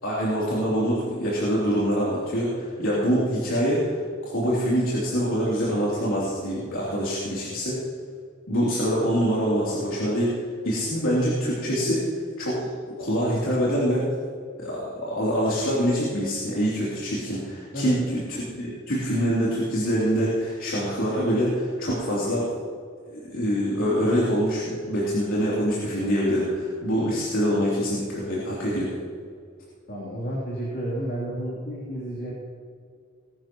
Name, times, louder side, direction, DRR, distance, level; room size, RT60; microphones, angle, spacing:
voice 1, 0.0-7.8 8.5-12.0 12.4-12.7 13.0-14.1 14.6-22.5 23.1-28.9, equal, 80° left, -8 dB, 3.3 m, -25 dB
voice 2, 29.9-32.3, right 1 dB, 55° left, -7 dB, 3.3 m, -31 dB
21.0 x 11.5 x 3.1 m, 2.2 s
head